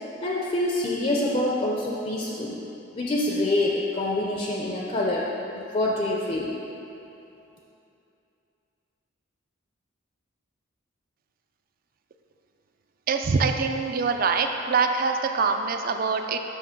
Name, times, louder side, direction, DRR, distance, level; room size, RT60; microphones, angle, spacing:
voice 1, 0.2-2.6 2.9-5.3 5.6-6.5, left 1 dB, 30° left, -2 dB, 0.4 m, -26 dB
voice 2, 13.1-16.4, right 4 dB, 45° right, 6 dB, 0.4 m, -24 dB
7.3 x 3.1 x 5.7 m, 2.8 s
head